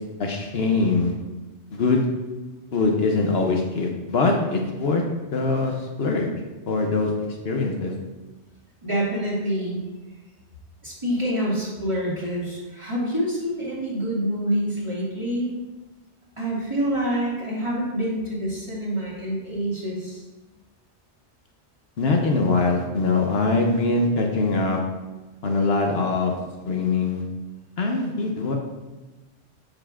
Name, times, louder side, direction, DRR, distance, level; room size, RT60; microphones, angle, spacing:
voice 1, 0.2-1.1 1.7-2.0 2.7-5.0 5.3-6.3 6.7-7.9 22.0-24.8 25.4-26.4 26.6-27.2 27.8-28.6, left 3 dB, 65° left, 1 dB, 0.9 m, -22 dB
voice 2, 8.8-9.8 10.8-15.5 16.4-20.2, equal, 25° right, -7 dB, 2.2 m, -26 dB
7.6 x 6.7 x 2.4 m, 1.2 s
omnidirectional pair, 1.2 m